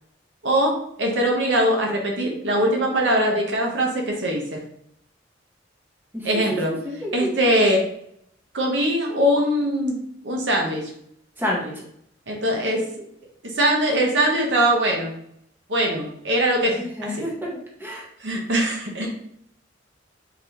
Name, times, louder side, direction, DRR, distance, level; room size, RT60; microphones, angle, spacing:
voice 1, 0.4-4.6 6.2-6.7 7.1-7.9 8.5-10.0 10.2-10.9 12.3-12.9 13.4-15.1 15.7-16.8 18.2-19.1, right 1 dB, 70° right, 0 dB, 0.9 m, -21 dB
voice 2, 6.1-7.3 11.4-11.7 16.7-18.1 19.0-19.1, left 1 dB, 10° right, -3 dB, 0.8 m, -29 dB
3.9 x 3.3 x 2.8 m, 0.71 s
head